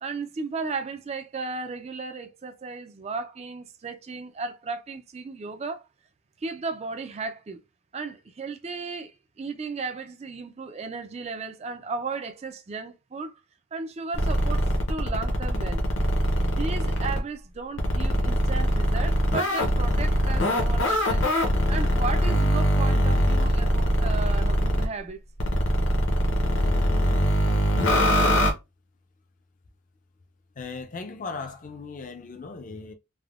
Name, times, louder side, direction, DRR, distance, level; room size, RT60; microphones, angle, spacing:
voice 1, 0.0-5.8 6.4-7.6 7.9-13.3 13.7-15.8 16.3-21.3 21.7-25.2, right 4 dB, 30° right, 0.3 m, -35 dB
sound 1, 14.1-17.2 17.8-24.9 25.4-28.5, equal, 60° left, 0.8 m, -22 dB
voice 2, 30.6-32.9, left 4 dB, 40° left, 0.4 m, -37 dB
3.4 x 2.1 x 2.4 m
head